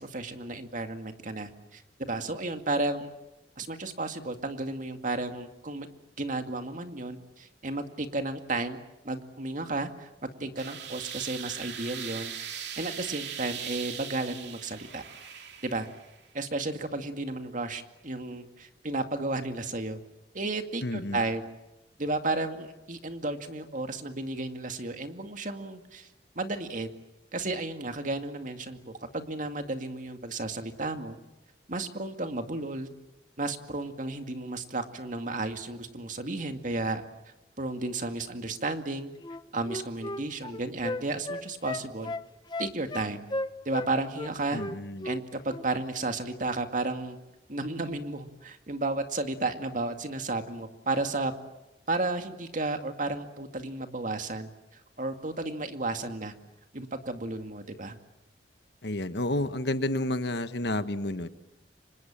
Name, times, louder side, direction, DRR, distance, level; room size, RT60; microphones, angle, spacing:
voice 1, 0.0-1.8 2.1-3.1 3.6-5.9 6.2-8.8 9.0-10.1 10.4-15.0 15.3-15.9 16.3-20.0 20.3-21.4 22.0-26.1 26.4-26.9 27.3-31.2 31.7-32.9 33.4-37.0 37.6-39.1 39.5-42.1 42.6-43.3 43.6-44.6 45.0-47.2 47.5-51.3 51.9-54.5 55.0-56.3 56.7-58.0, right 2 dB, 50° right, 6 dB, 2.2 m, -33 dB
sound 1, 10.6-16.2, right 8 dB, 75° right, 2.8 m, -40 dB
voice 2, 20.8-21.2 44.5-45.1 58.8-61.3, left 1 dB, 70° left, 10 dB, 1.4 m, -30 dB
Wind instrument woodwind instrument, 39.2-43.9 44.2-45.2 45.5-45.7, left 2 dB, 25° left, 1.0 m, -35 dB
30.0 x 25.5 x 7.5 m, 0.98 s
head